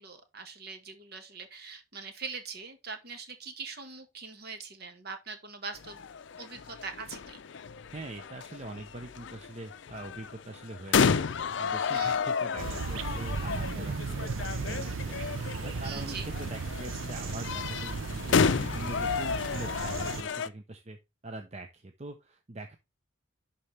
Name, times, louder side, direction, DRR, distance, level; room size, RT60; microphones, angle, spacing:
voice 1, 0.0-6.0 6.4-7.4 11.9-12.2 15.8-16.3, right 4 dB, 50° right, 1.4 m, -42 dB
sound 1, 5.8-20.5, left 6 dB, 60° left, 0.5 m, -32 dB
voice 2, 7.9-11.2 11.6-21.0 21.2-22.7, right 2 dB, 35° right, 0.6 m, -43 dB
sound 2, 12.6-20.2, right 4 dB, 75° right, 0.6 m, -36 dB
11.0 x 4.3 x 3.2 m
head